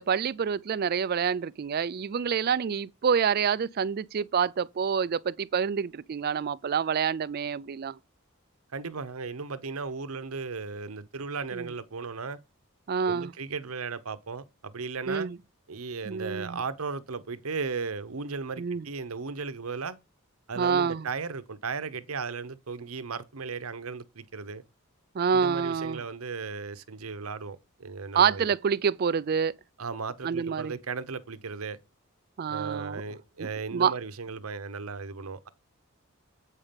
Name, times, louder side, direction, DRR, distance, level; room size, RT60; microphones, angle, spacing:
voice 1, 0.0-8.0 11.5-11.7 12.9-13.3 15.1-15.4 16.1-16.6 18.6-18.8 20.6-21.1 25.1-26.0 28.1-29.5 30.2-30.7 32.4-33.0 33.4-33.9, right 6 dB, 45° right, 0.4 m, -27 dB
voice 2, 8.7-12.4 13.1-15.3 15.7-20.0 20.5-24.6 25.3-28.4 29.8-31.8 32.5-35.5, right 4 dB, 85° right, 0.9 m, -36 dB
8.3 x 5.6 x 5.2 m
head